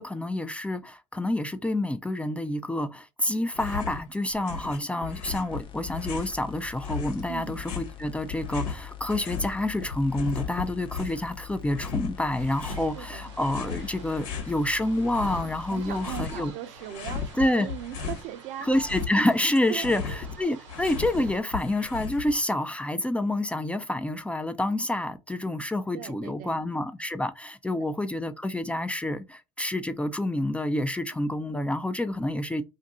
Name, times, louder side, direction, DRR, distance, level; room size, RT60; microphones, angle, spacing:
voice 1, 0.0-16.5 17.4-17.7 18.6-20.0 20.4-32.6, left 1 dB, 10° left, 0.4 m, -28 dB
sound 1, 3.5-4.0 4.3-6.4 6.8-9.5 9.8-11.3 11.7-12.9 13.4-14.5 14.9-16.5 16.8-18.3 18.6-22.5, left 6 dB, 70° left, 1.2 m, -36 dB
sound 2, 5.5-16.5, left 11 dB, 35° left, 0.8 m, -44 dB
voice 2, 7.3-7.6 12.7-13.3 13.7-13.9 15.4-18.8 19.7-20.2 25.9-26.7 27.7-27.9, right 11 dB, 55° right, 0.6 m, -39 dB
sound 3, 12.4-21.4, right 7 dB, 80° right, 0.9 m, -49 dB
2.5 x 2.5 x 4.1 m
hypercardioid pair, 80°, 16 cm